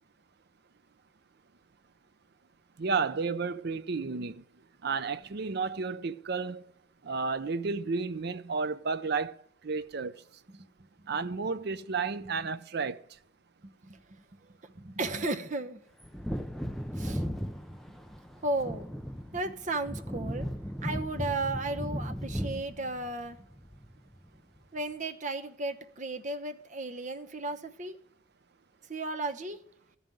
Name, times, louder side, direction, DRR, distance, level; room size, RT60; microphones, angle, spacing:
voice 1, 2.8-4.4 4.8-6.6 7.0-9.4 9.6-10.2 11.1-13.0, right 4 dB, 55° right, 0.6 m, -32 dB
voice 2, 14.6-15.8 16.9-17.2 17.7-17.8 18.4-18.9 19.3-20.5 20.8-23.4 24.7-28.0 28.9-29.6, right 2 dB, 40° right, 0.9 m, -34 dB
Wind / Thunder, 16.0-24.3 24.6-24.7, equal, ahead, 0.5 m, -36 dB
13.5 x 5.5 x 9.0 m
head